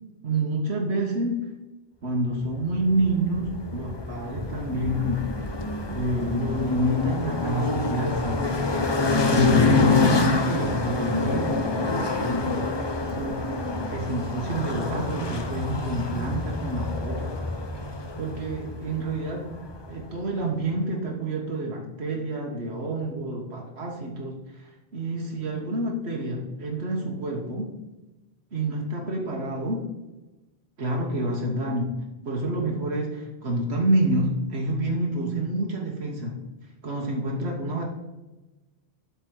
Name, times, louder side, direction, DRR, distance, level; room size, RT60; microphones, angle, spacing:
voice 1, 0.2-1.5 2.0-5.4 5.9-8.5 9.3-13.5 13.9-17.3 18.2-19.5 19.9-27.7 28.5-29.9 30.8-32.0 32.2-36.4 36.8-37.9, right 1 dB, 85° right, -1 dB, 1.6 m, -28 dB
sound 1, 2.7-20.1, left 3 dB, 30° left, 0.7 m, -27 dB
8.0 x 4.4 x 6.3 m, 1.1 s
omnidirectional pair, 1.1 m